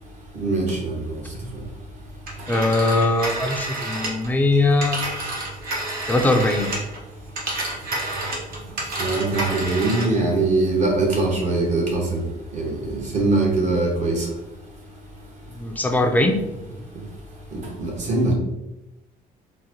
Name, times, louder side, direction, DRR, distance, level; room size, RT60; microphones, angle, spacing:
voice 1, 0.3-0.9 9.0-12.2 12.5-14.3 17.5-18.3, right 2 dB, 45° right, -1 dB, 1.1 m, -22 dB
Telephone, 2.3-7.0 7.3-10.2, right 2 dB, 60° right, 1.0 m, -29 dB
voice 2, 2.5-5.0 6.1-6.7 15.5-16.4, left 2 dB, 10° left, 5 dB, 0.4 m, -20 dB
3.9 x 2.2 x 2.8 m, 0.92 s
cardioid pair, 110°, 17 cm